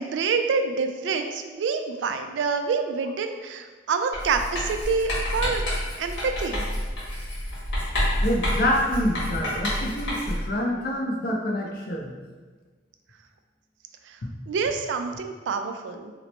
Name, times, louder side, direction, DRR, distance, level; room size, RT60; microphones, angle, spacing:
voice 1, 0.0-5.6 6.0-6.7 14.5-16.1, right 5 dB, 75° right, 7 dB, 0.3 m, -27 dB
Writing, 4.1-10.5, equal, 80° left, 1.4 m, -28 dB
voice 2, 8.2-12.1, left 1 dB, 55° left, 0 dB, 0.5 m, -26 dB
2.9 x 2.1 x 4.1 m, 1.4 s
head